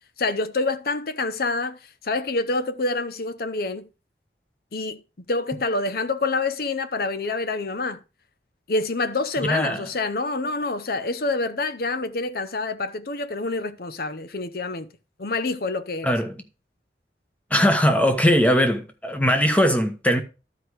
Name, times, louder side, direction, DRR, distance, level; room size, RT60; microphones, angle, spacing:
voice 1, 0.2-3.9 4.7-8.0 8.7-14.9 15.2-16.2, left 3 dB, 55° left, 0.7 m, -27 dB
voice 2, 9.4-9.8 16.0-16.4 17.5-20.2, equal, 10° left, 1.0 m, -20 dB
12.0 x 4.7 x 4.7 m
head